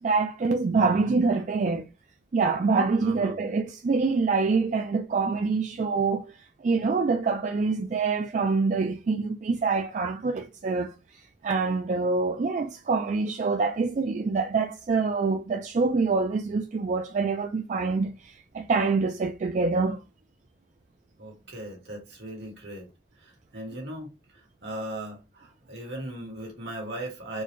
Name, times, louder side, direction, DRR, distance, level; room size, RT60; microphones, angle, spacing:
voice 1, 0.0-1.9 2.3-6.3 6.6-20.0, right 4 dB, 45° right, 0.3 m, -25 dB
voice 2, 0.7-1.2 3.0-3.4 21.2-22.9 23.2-27.4, right 1 dB, 75° right, 1.6 m, -38 dB
4.4 x 2.1 x 3.0 m
head